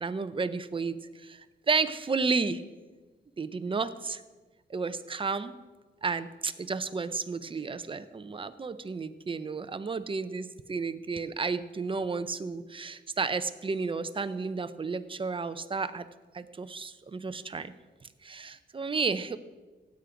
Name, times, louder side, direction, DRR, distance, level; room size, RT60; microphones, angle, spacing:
voice 1, 0.0-2.6 3.4-4.2 4.7-5.5 6.0-16.1 16.3-17.7 18.2-19.4, right 4 dB, 30° right, 12 dB, 0.7 m, -32 dB
16.5 x 8.5 x 5.1 m, 1.3 s
cardioid pair, 110°, 19 cm